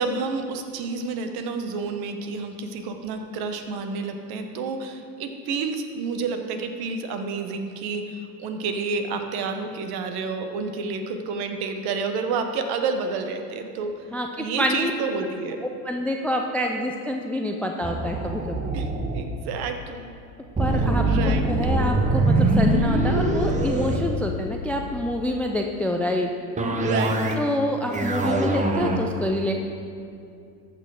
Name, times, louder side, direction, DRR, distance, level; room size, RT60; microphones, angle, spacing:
voice 1, 0.0-14.0 14.4-15.6 18.6-18.9 19.1-20.1 21.0-21.5 26.8-27.2, right 4 dB, 50° right, 6 dB, 1.2 m, -29 dB
voice 2, 14.1-14.9 15.8-18.6 20.6-26.3 27.4-29.5, left 1 dB, 5° left, 3 dB, 0.4 m, -27 dB
sound 1, 17.8-19.2 20.6-24.8 26.6-27.5 27.8-29.0, right 2 dB, 15° right, 0.9 m, -23 dB
14.0 x 6.2 x 4.9 m, 2.4 s
hypercardioid pair, 85°, 49 cm